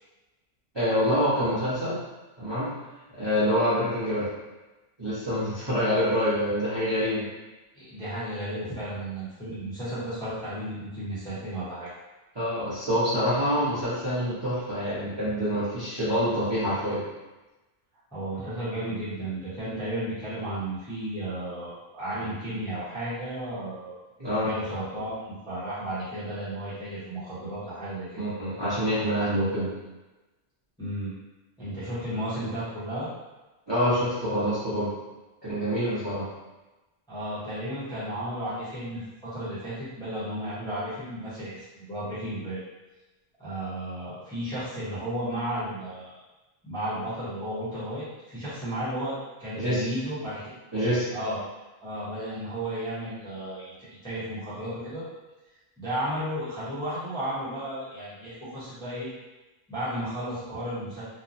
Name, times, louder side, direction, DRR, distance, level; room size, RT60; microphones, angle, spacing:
voice 1, 0.7-2.0 2.4-2.7 3.2-4.3 5.0-7.3 12.3-17.0 24.2-24.5 28.2-29.7 33.7-34.9 35.4-36.2 49.5-49.9 50.7-51.1, equal, 25° right, -13 dB, 0.8 m, -26 dB
voice 2, 7.7-11.9 18.1-24.0 24.4-28.2 30.8-31.1 31.6-33.1 37.1-42.6 43.4-46.1 46.6-50.4 51.1-51.4 51.8-55.0 55.8-59.1 59.7-61.0, right 1 dB, 5° left, -12 dB, 0.9 m, -33 dB
3.0 x 2.0 x 2.6 m, 1.1 s
omnidirectional pair, 1.2 m